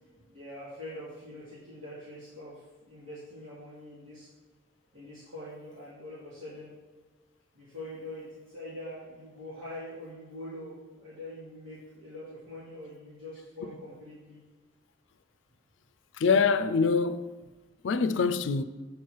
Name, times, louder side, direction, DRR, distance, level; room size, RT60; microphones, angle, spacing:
voice 1, 0.1-2.5 2.8-4.3 4.9-6.7 7.5-14.4 16.7-16.8, left 1 dB, 90° right, 2.6 m, -44 dB
voice 2, 16.2-17.2 17.8-18.6, left 5 dB, 75° left, 0.4 m, -24 dB
8.6 x 4.6 x 4.6 m
head